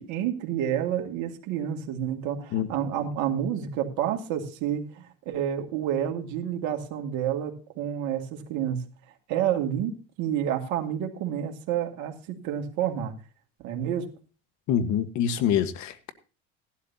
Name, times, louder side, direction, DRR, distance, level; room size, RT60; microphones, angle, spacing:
voice 1, 0.0-8.8 9.3-13.1 13.6-14.1, right 10 dB, 65° right, 2.2 m, -29 dB
voice 2, 14.7-16.1, left 9 dB, 60° left, 1.4 m, -25 dB
16.5 x 12.0 x 2.8 m
supercardioid pair, 95°, 31 cm